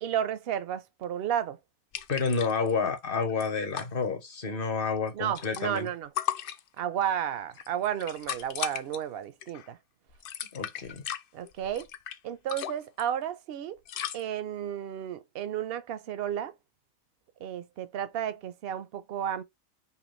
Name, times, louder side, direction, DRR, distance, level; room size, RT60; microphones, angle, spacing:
voice 1, 0.0-1.6 5.1-6.1 6.8-9.8 11.3-11.9 12.2-13.8 14.1-16.5 17.4-19.4, right 10 dB, 60° right, 0.7 m, -32 dB
sound 1, 1.9-2.7 3.0-3.1 3.3-3.9 4.9-5.9 6.2-7.0 7.5-9.0 9.4-9.7 10.1-12.2 12.5-13.0 13.9-14.2, left 10 dB, 85° left, 0.4 m, -36 dB
voice 2, 2.1-5.9 10.5-11.0, left 5 dB, 40° left, 1.1 m, -29 dB
5.6 x 2.3 x 3.1 m
omnidirectional pair, 1.5 m